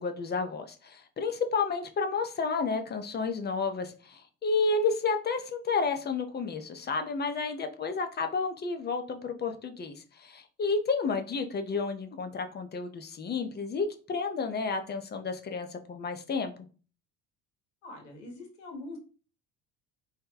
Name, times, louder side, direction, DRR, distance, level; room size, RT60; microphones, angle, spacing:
voice 1, 0.0-16.5, left 4 dB, 30° left, 0.6 m, -31 dB
voice 2, 17.8-19.0, left 2 dB, 80° left, 1.3 m, -43 dB
2.9 x 2.1 x 3.8 m
hypercardioid pair, 75°, 36 cm